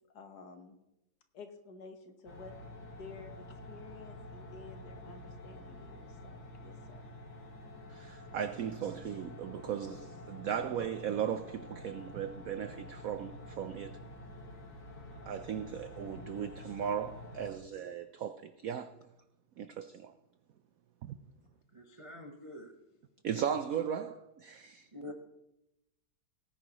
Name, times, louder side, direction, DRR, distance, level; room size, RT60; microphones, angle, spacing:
voice 1, 0.1-0.8 1.3-2.5 2.8-7.1, left 4 dB, 60° left, 1.7 m, -52 dB
sound 1, 2.2-17.5, left 1 dB, 75° left, 2.8 m, -48 dB
voice 2, 7.9-14.0 15.3-18.9 19.6-20.1 21.0-21.2 23.2-24.9, right 8 dB, 85° right, 0.7 m, -37 dB
voice 3, 21.7-22.7 24.9-25.1, left 1 dB, 35° right, 0.5 m, -46 dB
18.5 x 10.0 x 3.0 m
omnidirectional pair, 2.1 m